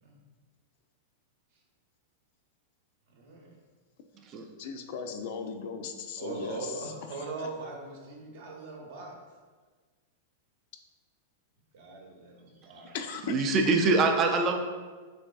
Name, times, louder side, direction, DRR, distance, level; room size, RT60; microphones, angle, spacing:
voice 1, 3.1-3.6 6.2-9.1 11.7-12.9, right 3 dB, 65° right, 0 dB, 0.8 m, -41 dB
voice 2, 4.6-6.9 7.4-7.5 12.9-13.8, left 5 dB, 60° left, 6 dB, 0.4 m, -37 dB
voice 3, 13.3-14.6, right 3 dB, 35° right, 4 dB, 0.3 m, -24 dB
3.3 x 3.3 x 2.3 m, 1.4 s
hypercardioid pair, 120°, 0 cm